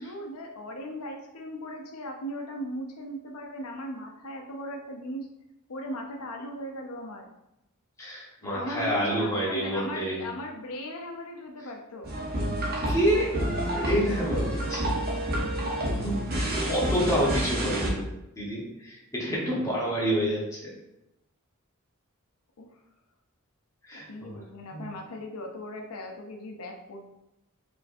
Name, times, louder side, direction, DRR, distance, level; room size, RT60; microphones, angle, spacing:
voice 1, 0.0-5.3 5.7-7.3 8.5-12.1 22.6-22.7 23.9-27.1, equal, 85° left, 2 dB, 0.6 m, -38 dB
voice 2, 8.0-10.2 12.7-14.9 15.9-18.0 18.4-20.7 23.8-24.4 24.7-24.9, equal, 15° left, -5 dB, 1.2 m, -28 dB
sound 1, 12.0-17.9, right 1 dB, 45° right, 0.8 m, -29 dB
4.4 x 3.2 x 2.6 m, 0.88 s
head